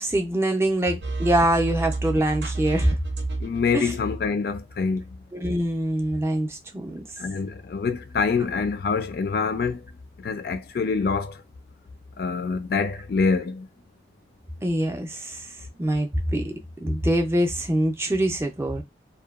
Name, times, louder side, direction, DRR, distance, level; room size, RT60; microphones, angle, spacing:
voice 1, 0.0-3.0 3.7-3.9 5.3-7.0 14.6-15.5 15.7-16.5 16.8-18.8, right 1 dB, 15° right, 0.4 m, -24 dB
sound 1, 1.0-3.7, right 3 dB, 75° right, 0.6 m, -29 dB
voice 2, 3.4-5.0 7.2-9.8 10.2-11.4 12.2-13.7, left 5 dB, 55° left, 0.3 m, -25 dB
2.7 x 2.2 x 2.3 m
head